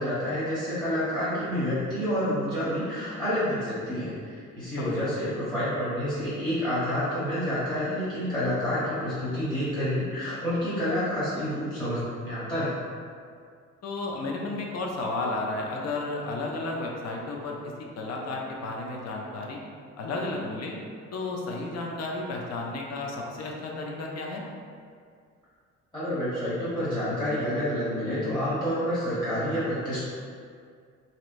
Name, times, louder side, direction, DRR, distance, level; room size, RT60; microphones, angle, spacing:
voice 1, 0.0-12.7 25.9-30.1, equal, 15° left, -12 dB, 1.1 m, -28 dB
voice 2, 13.8-17.6 18.0-19.6 20.0-20.7 21.1-24.4, left 2 dB, 60° left, -1 dB, 0.6 m, -32 dB
3.1 x 2.8 x 2.5 m, 2.2 s
cardioid pair, 90°, 30 cm